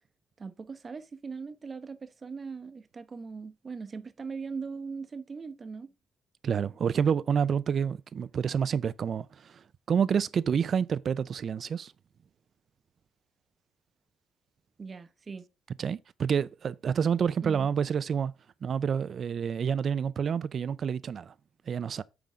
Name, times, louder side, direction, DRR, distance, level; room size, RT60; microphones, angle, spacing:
voice 1, 0.4-5.9 14.8-15.5 17.4-17.7, right 5 dB, 35° right, 0.9 m, -40 dB
voice 2, 6.4-9.6 9.9-11.9 15.8-18.3 18.6-21.3 21.7-22.0, right 7 dB, 55° right, 0.5 m, -28 dB
9.3 x 3.9 x 4.9 m
cardioid pair, 90°, 0 cm